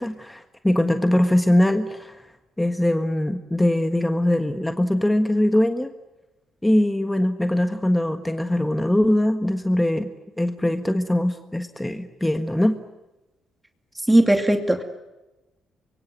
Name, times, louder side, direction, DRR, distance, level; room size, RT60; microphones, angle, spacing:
voice 1, 0.0-2.2 2.6-5.9 6.6-10.1 10.4-12.8, left 1 dB, 10° left, 7 dB, 1.5 m, -21 dB
voice 2, 14.1-14.8, right 1 dB, 10° right, 5 dB, 2.6 m, -18 dB
25.5 x 23.5 x 9.3 m, 1.0 s
cardioid pair, 90°, 0 cm